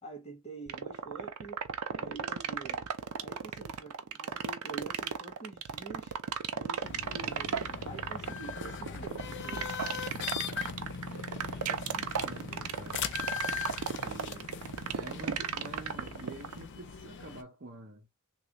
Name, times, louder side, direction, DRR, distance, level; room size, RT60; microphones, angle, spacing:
voice 1, 0.0-1.6 1.9-2.9 3.2-6.1 6.5-9.8, right 3 dB, 30° left, 1.2 m, -47 dB
sound 1, 0.7-16.6, right 7 dB, 75° right, 0.5 m, -34 dB
sound 2, 6.8-17.4, left 7 dB, 55° left, 0.5 m, -40 dB
voice 2, 11.1-13.1 13.8-14.5 14.9-18.1, right 1 dB, 45° right, 0.8 m, -48 dB
3.3 x 2.5 x 3.0 m
head